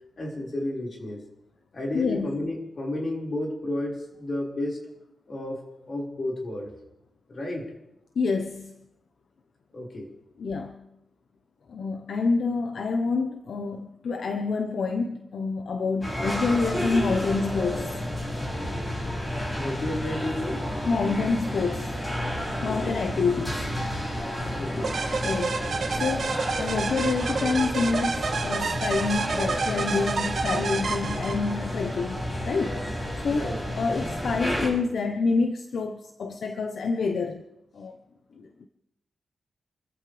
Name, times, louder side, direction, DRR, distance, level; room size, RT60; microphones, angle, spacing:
voice 1, 0.2-1.2 1.7-4.8 5.3-5.6 5.9-6.7 7.3-7.7 9.7-10.1 19.5-20.7 22.6-23.0 24.6-25.0 33.3-33.6, left 1 dB, 40° left, -2 dB, 5.2 m, -32 dB
voice 2, 1.9-2.4 8.1-8.7 10.4-10.7 11.7-18.0 20.9-22.0 22.6-23.6 25.2-25.6 25.9-32.8 33.2-33.5 33.8-37.4 37.7-38.0 38.4-38.7, left 4 dB, 65° left, 5 dB, 1.1 m, -27 dB
sound 1, 16.0-34.7, equal, 20° left, 6.9 m, -31 dB
sound 2, 24.8-31.7, right 4 dB, 60° right, 2.3 m, -29 dB
29.0 x 14.5 x 3.5 m, 0.87 s
wide cardioid pair, 120°, 0 cm